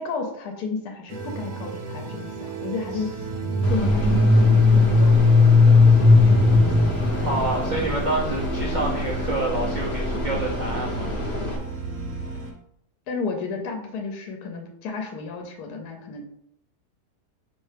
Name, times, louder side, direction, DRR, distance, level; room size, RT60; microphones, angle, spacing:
voice 1, 0.0-3.2 3.7-6.7 7.0-7.5 13.1-16.2, left 4 dB, 75° left, 3 dB, 1.1 m, -33 dB
sound 1, 1.1-12.5, right 4 dB, 60° right, 1.0 m, -34 dB
sound 2, 3.3-8.1, left 3 dB, 35° right, 0.8 m, -17 dB
sound 3, 3.6-11.6, left 1 dB, 50° left, 0.9 m, -29 dB
voice 2, 7.2-11.1, right 2 dB, 85° right, -3 dB, 0.4 m, -27 dB
5.4 x 3.0 x 3.3 m, 0.77 s
omnidirectional pair, 1.8 m